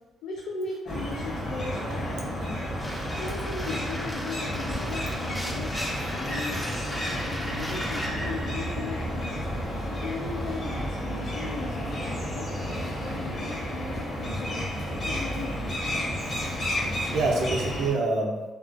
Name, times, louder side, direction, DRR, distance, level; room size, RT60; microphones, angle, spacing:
voice 1, 0.2-2.9 3.2-5.7 6.1-9.5 9.8-14.7 15.0-15.7, left 3 dB, 90° left, -2 dB, 0.3 m, -38 dB
sound 1, 0.9-17.9, equal, 40° left, 0.8 m, -31 dB
sound 2, 2.8-8.1, equal, 5° left, 0.3 m, -38 dB
voice 2, 16.2-16.5 16.8-18.4, right 3 dB, 75° right, -1 dB, 0.5 m, -28 dB
2.3 x 2.2 x 2.4 m, 1.1 s
cardioid pair, 90°, 0 cm